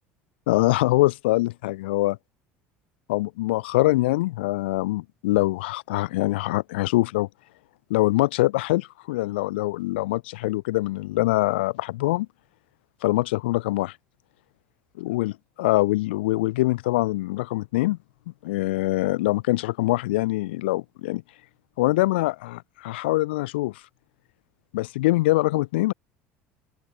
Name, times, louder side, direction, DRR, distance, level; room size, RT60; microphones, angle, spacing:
voice 1, 0.5-2.2 3.1-7.3 7.9-12.3 13.0-14.0 15.0-18.0 18.4-21.2 21.8-23.8 24.7-25.9, left 19 dB, 85° left, 0.4 m, -24 dB
open air
supercardioid pair, 85°, 6 cm